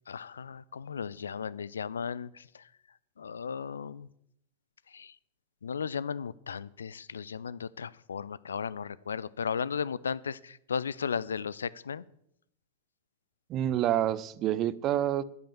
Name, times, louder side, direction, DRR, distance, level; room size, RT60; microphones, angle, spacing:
voice 1, 0.1-2.7 3.2-4.1 4.9-5.1 5.6-12.0, left 6 dB, 70° left, 21 dB, 0.5 m, -35 dB
voice 2, 13.5-15.2, right 12 dB, 35° right, 18 dB, 0.7 m, -28 dB
10.5 x 8.7 x 7.1 m, 0.75 s
figure-of-eight pair, 90°, 0 cm